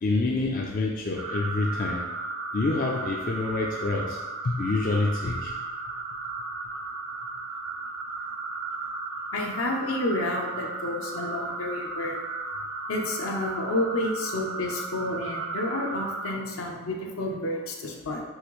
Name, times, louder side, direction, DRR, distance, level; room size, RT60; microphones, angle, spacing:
voice 1, 0.0-2.0 2.5-5.5, left 3 dB, 40° left, -1 dB, 0.3 m, -27 dB
sound 1, 1.2-16.3, right 3 dB, 60° right, 0.6 m, -35 dB
voice 2, 9.3-12.2 12.9-18.2, left 1 dB, 70° left, 0 dB, 0.7 m, -30 dB
6.4 x 2.6 x 3.0 m, 1.3 s
head